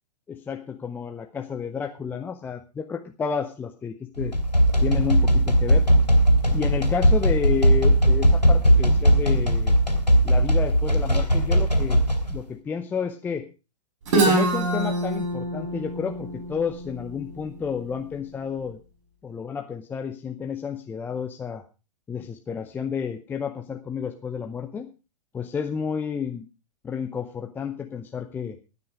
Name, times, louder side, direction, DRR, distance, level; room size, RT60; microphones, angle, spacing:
voice 1, 0.3-4.3 4.8-5.9 6.5-9.8 10.2-12.0 12.3-13.5 14.2-18.8 19.2-21.6 22.1-24.9 25.3-26.5 26.8-28.6, left 6 dB, 10° left, 5 dB, 0.7 m, -31 dB
sound 1, 4.2-12.4, equal, 85° left, 3.4 m, -19 dB
Guitar, 14.1-17.8, right 2 dB, 50° right, 5.0 m, -25 dB
15.0 x 9.5 x 4.8 m, 0.32 s
figure-of-eight pair, 110°, 21 cm